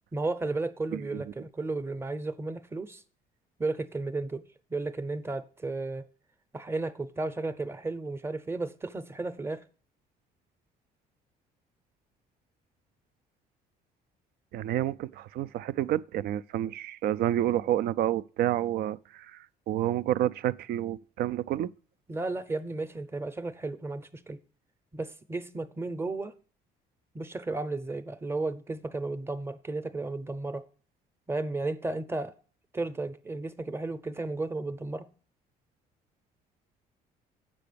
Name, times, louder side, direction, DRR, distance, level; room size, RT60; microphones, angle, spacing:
voice 1, 0.1-3.0 3.6-4.4 4.7-6.1 6.5-9.6 22.1-24.4 24.9-26.3 27.1-30.7 31.3-32.3 32.7-35.1, right 2 dB, 15° right, 0.7 m, -33 dB
voice 2, 0.9-1.2 14.5-21.7, right 12 dB, 65° right, 0.4 m, -29 dB
7.7 x 6.1 x 6.7 m
cardioid pair, 110°, 17 cm